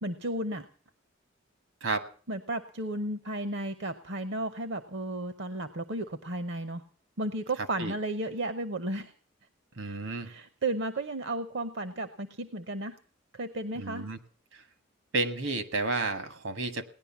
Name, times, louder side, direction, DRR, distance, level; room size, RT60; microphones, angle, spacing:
voice 1, 0.0-0.7 2.3-6.8 7.2-9.1 9.8-10.0 10.2-13.0 13.3-14.1, right 1 dB, 60° right, 10 dB, 0.8 m, -34 dB
voice 2, 9.8-10.3 13.8-14.2 15.1-16.8, right 3 dB, 75° right, 9 dB, 1.6 m, -31 dB
18.0 x 11.0 x 7.2 m, 0.42 s
head